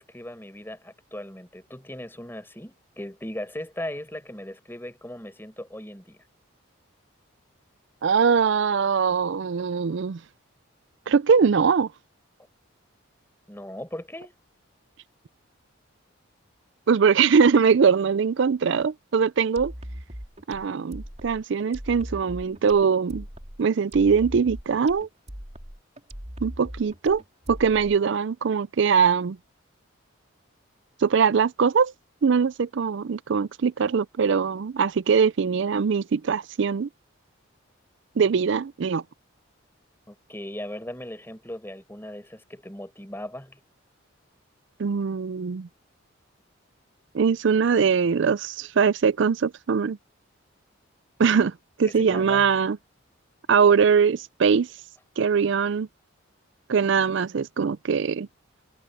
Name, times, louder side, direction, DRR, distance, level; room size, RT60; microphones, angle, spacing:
voice 1, 0.0-6.2 13.5-14.3 40.1-43.6 51.8-52.5, left 1 dB, 10° left, 4.6 m, -38 dB
voice 2, 8.0-10.2 11.1-11.9 16.9-19.7 20.5-23.2 23.6-25.1 26.4-27.2 27.5-29.4 31.0-31.9 32.2-36.9 38.2-39.0 44.8-45.7 47.1-50.0 51.2-52.8 53.5-54.7 55.2-55.9 56.7-58.3, right 6 dB, 60° right, 0.4 m, -22 dB
sound 1, 19.6-28.2, equal, 30° right, 3.4 m, -40 dB
head